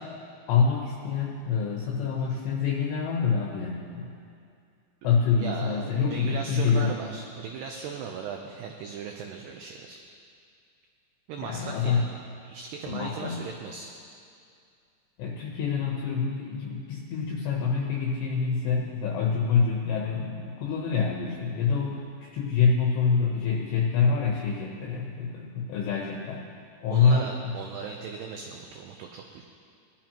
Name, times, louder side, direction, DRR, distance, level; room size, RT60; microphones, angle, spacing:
voice 1, 0.5-4.1 5.0-7.0 11.4-12.0 12.9-13.4 15.2-26.4 26.8-27.5, left 5 dB, 75° left, -2 dB, 2.9 m, -26 dB
voice 2, 5.4-10.0 11.3-12.1 12.4-13.9 26.9-29.5, right 6 dB, 90° right, 3 dB, 2.3 m, -38 dB
19.5 x 12.0 x 3.0 m, 2.4 s
omnidirectional pair, 5.6 m